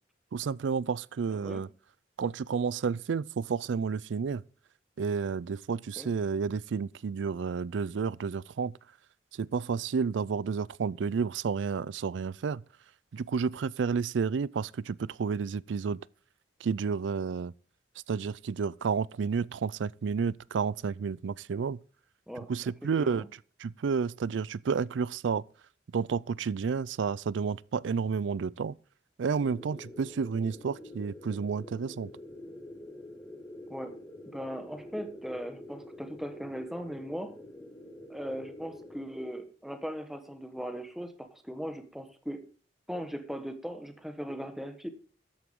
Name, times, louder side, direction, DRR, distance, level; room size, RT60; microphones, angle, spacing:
voice 1, 0.3-1.7 2.2-4.4 5.0-8.8 9.4-12.6 13.1-16.0 16.6-17.5 18.1-21.8 22.5-23.2 23.6-25.4 25.9-28.7 29.2-32.1, right 5 dB, 90° right, 0.4 m, -31 dB
voice 2, 1.3-1.6 6.0-6.1 22.3-22.5 22.8-23.3 33.7-34.0 34.3-37.4 38.1-42.4 42.9-44.9, equal, ahead, 1.2 m, -39 dB
sound 1, 29.4-39.0, left 1 dB, 15° left, 1.8 m, -47 dB
13.0 x 9.3 x 3.7 m
head